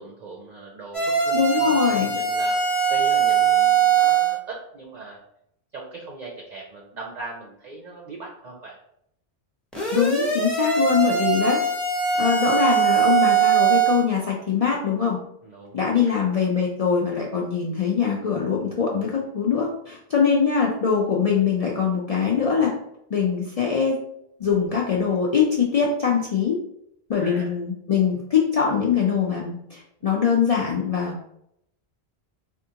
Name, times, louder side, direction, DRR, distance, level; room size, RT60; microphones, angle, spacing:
voice 1, 0.0-2.6 2.9-5.2 5.7-8.8 15.4-16.1 27.1-27.5, right 3 dB, 55° right, -1 dB, 0.6 m, -39 dB
sound 1, 0.9-4.4 9.7-14.0, right 7 dB, ahead, 0.6 m, -21 dB
voice 2, 1.3-2.1 9.9-11.6 12.2-15.2 15.7-22.7 23.1-24.0 24.4-26.6 27.1-31.3, left 6 dB, 60° left, -2 dB, 0.4 m, -22 dB
3.5 x 2.4 x 2.7 m, 0.75 s
omnidirectional pair, 1.1 m